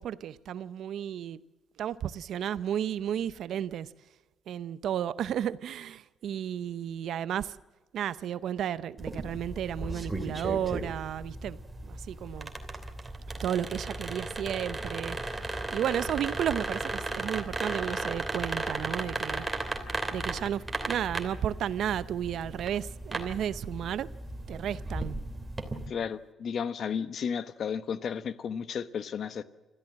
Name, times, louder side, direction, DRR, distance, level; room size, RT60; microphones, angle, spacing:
voice 1, 0.0-1.4 1.8-3.9 4.5-7.5 7.9-12.5 13.4-15.2 15.7-19.4 20.1-24.1 24.5-25.2, right 10 dB, 70° right, 0.7 m, -33 dB
sound 1, 9.0-25.9, right 2 dB, 15° right, 2.8 m, -36 dB
voice 2, 25.9-29.4, left 7 dB, 60° left, 1.0 m, -33 dB
26.0 x 14.5 x 7.5 m
cardioid pair, 90°, 0 cm